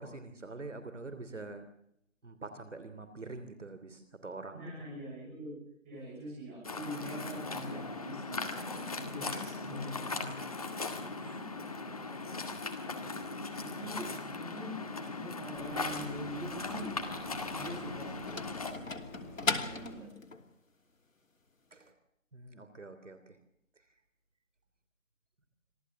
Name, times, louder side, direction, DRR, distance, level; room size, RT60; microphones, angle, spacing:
voice 1, 0.0-1.6 2.2-4.7 13.9-14.3 21.7-21.9 22.3-23.4, right 3 dB, 65° right, 10 dB, 3.2 m, -45 dB
voice 2, 4.5-5.6 5.8-10.5 11.1-11.4 12.8-12.9 13.6-16.9 17.5-18.6 19.4-20.1, equal, 10° right, -5 dB, 7.1 m, -44 dB
Waves surf, 6.6-18.7, left 3 dB, 30° left, 2.0 m, -39 dB
sound 1, 15.6-20.0, left 2 dB, 10° left, 3.3 m, -49 dB
sound 2, 17.2-20.5, left 4 dB, 80° left, 3.0 m, -37 dB
26.0 x 15.5 x 7.4 m, 0.74 s
figure-of-eight pair, 175°, 39 cm